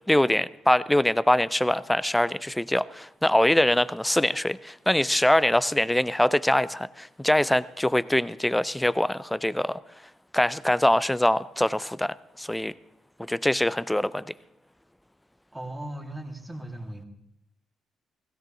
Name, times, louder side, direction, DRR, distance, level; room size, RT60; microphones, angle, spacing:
voice 1, 0.1-9.8 10.3-12.7 13.3-14.3, left 1 dB, 5° left, 0.5 m, -23 dB
voice 2, 15.5-17.1, right 1 dB, 10° right, 2.6 m, -37 dB
16.5 x 16.0 x 3.8 m
cardioid pair, 90°, 0 cm